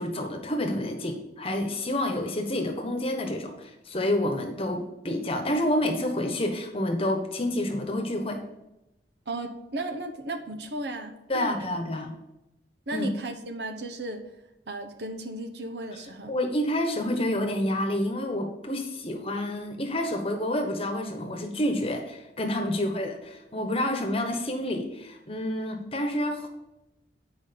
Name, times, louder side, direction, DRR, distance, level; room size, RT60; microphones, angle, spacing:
voice 1, 0.0-8.4 11.3-12.1 12.9-13.1 16.3-26.5, left 1 dB, 30° left, 4 dB, 1.2 m, -28 dB
voice 2, 9.3-11.5 12.9-14.2 14.7-16.3, right 1 dB, 65° right, 8 dB, 1.0 m, -35 dB
9.0 x 5.2 x 5.2 m, 0.93 s
head